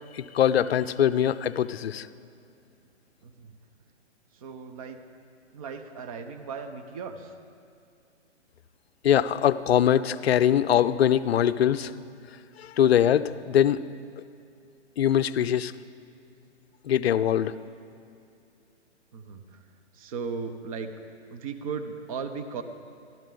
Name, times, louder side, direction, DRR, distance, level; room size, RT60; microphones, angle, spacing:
voice 1, 0.1-2.1 9.0-11.9 12.6-13.8 15.0-15.7 16.9-17.5, left 10 dB, 60° left, 14 dB, 0.5 m, -22 dB
voice 2, 3.2-3.6 4.3-5.0 5.5-7.3 19.1-19.6 19.9-20.9 21.3-22.6, right 5 dB, 30° right, 8 dB, 0.7 m, -36 dB
13.0 x 12.0 x 3.8 m, 2.5 s
hypercardioid pair, 145°, 35 cm